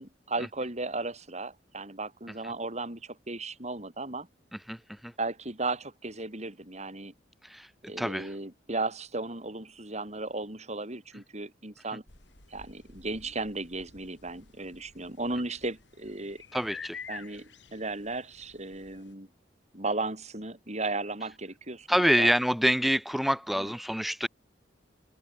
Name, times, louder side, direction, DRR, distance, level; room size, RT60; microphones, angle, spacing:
voice 1, 0.0-4.3 5.2-7.1 7.9-12.0 12.5-16.4 17.1-19.3 19.7-22.3 23.5-23.7, right 2 dB, 40° right, 5.1 m, -35 dB
voice 2, 4.7-5.1 7.4-7.7 8.0-8.3 16.5-17.0 21.9-24.3, equal, ahead, 0.4 m, -26 dB
sound 1, 12.1-19.1, left 5 dB, 90° left, 4.8 m, -49 dB
head